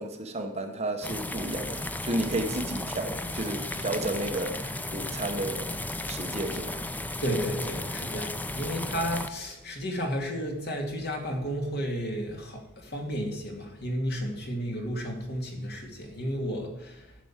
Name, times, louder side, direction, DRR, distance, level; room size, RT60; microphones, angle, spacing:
voice 1, 0.0-5.7 6.1-6.8, right 1 dB, 30° right, 1.1 m, -32 dB
sound 1, 1.0-9.3, left 2 dB, 10° left, 0.4 m, -34 dB
voice 2, 7.2-17.2, equal, 50° left, 2.3 m, -32 dB
11.5 x 6.2 x 7.2 m
head